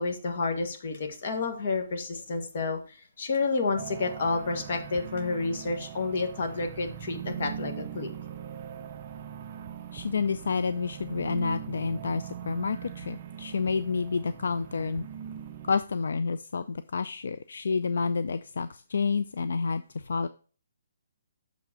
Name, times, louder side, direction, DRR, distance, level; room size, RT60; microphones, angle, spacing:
voice 1, 0.0-8.1, left 3 dB, 45° left, 4 dB, 1.5 m, -30 dB
sound 1, 3.8-15.7, right 9 dB, 30° right, 0.5 m, -41 dB
voice 2, 9.9-15.1 15.6-20.3, left 5 dB, 75° left, 13 dB, 0.4 m, -29 dB
6.7 x 4.9 x 4.9 m, 0.37 s
hypercardioid pair, 170°, 0 cm